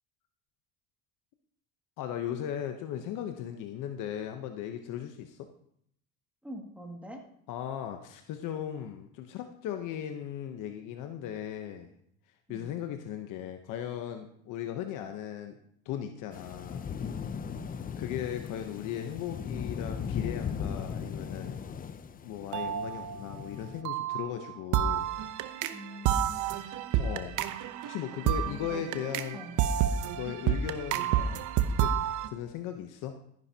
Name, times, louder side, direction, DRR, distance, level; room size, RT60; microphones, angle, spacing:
voice 1, 2.0-5.5 7.5-11.9 12.5-15.6 15.8-16.9 18.0-21.6 22.2-25.1 26.5-27.4 27.8-29.4 30.1-31.9 32.3-33.2, left 10 dB, 70° left, 6 dB, 1.0 m, -37 dB
voice 2, 6.4-7.2 12.5-12.7 17.5-17.7 25.7-26.5 28.4-28.8 29.3-29.5, equal, 5° right, 1 dB, 2.2 m, -44 dB
sound 1, 16.3-23.8, left 7 dB, 25° left, 0.6 m, -38 dB
sound 2, 22.5-23.5 23.8-32.3, right 9 dB, 65° right, 0.9 m, -30 dB
13.5 x 10.5 x 2.9 m, 0.69 s
cardioid pair, 110°, 33 cm